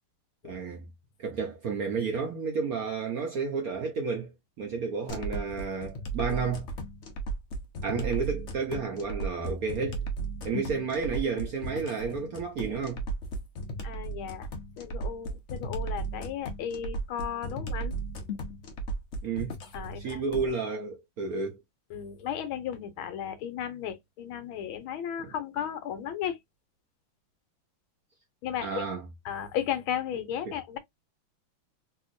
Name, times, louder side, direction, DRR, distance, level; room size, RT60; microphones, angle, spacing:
voice 1, 0.4-0.9 1.2-4.3 4.6-6.7 7.8-10.0 10.4-13.0 19.2-19.6 20.0-21.6 28.6-29.0, right 5 dB, 65° right, 0.9 m, -31 dB
sound 1, 5.1-20.5, right 3 dB, 55° left, 0.8 m, -35 dB
voice 2, 13.8-14.5 14.8-17.9 19.7-20.2 21.9-26.4 28.4-28.9 29.2-30.8, left 9 dB, 80° left, 1.5 m, -35 dB
3.4 x 2.8 x 2.5 m
omnidirectional pair, 2.3 m